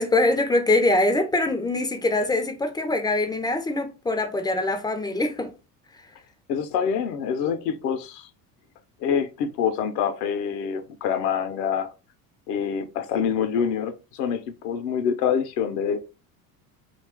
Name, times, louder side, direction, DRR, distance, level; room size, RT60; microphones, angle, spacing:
voice 1, 0.0-5.5, left 2 dB, 10° left, 0.3 m, -23 dB
voice 2, 6.5-8.3 9.0-11.9 12.5-16.0, left 7 dB, 80° left, 0.7 m, -26 dB
2.8 x 2.4 x 3.4 m
hypercardioid pair, 75°, 47 cm